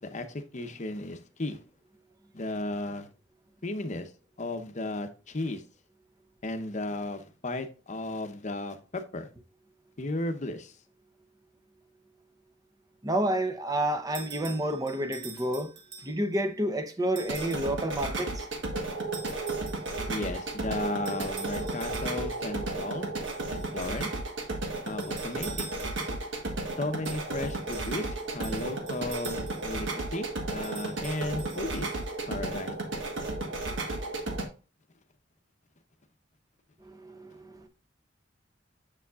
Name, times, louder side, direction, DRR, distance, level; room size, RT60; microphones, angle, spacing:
voice 1, 0.0-1.6 2.3-3.1 3.6-4.1 4.4-5.6 6.4-9.3 10.0-10.7 20.1-23.1 23.5-24.1 24.8-25.7 26.8-32.0 32.2-32.7, left 2 dB, 40° left, 0.8 m, -35 dB
voice 2, 13.0-15.7 16.0-18.5 36.8-37.7, right 1 dB, 20° right, 0.7 m, -30 dB
sound 1, 14.1-16.4 17.2-17.7 19.1-20.1 21.0-22.4 23.3-24.1 24.9-26.3 27.0-29.8 30.5-32.2, right 5 dB, 60° right, 1.5 m, -46 dB
sound 2, 17.2-34.4, right 2 dB, 75° right, 1.4 m, -34 dB
7.1 x 7.0 x 2.4 m
head